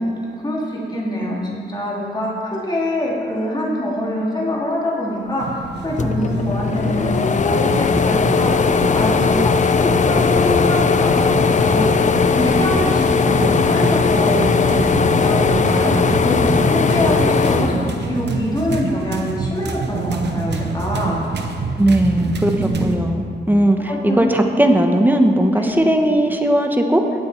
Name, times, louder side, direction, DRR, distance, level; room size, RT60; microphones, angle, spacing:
voice 1, 0.0-9.5 9.8-21.3 22.5-22.9 23.9-24.4 25.5-25.7, left 1 dB, 25° left, -5 dB, 3.1 m, -24 dB
sound 1, 5.4-23.0, right 4 dB, 75° right, 1.0 m, -27 dB
sound 2, 5.6-5.7 6.0-18.6 19.0-20.1, left 5 dB, 45° left, 0.5 m, -18 dB
voice 2, 21.8-22.5 22.8-27.0, right 1 dB, 10° right, 4 dB, 1.0 m, -17 dB
17.5 x 7.4 x 4.4 m, 2.3 s
wide cardioid pair, 95°, 18 cm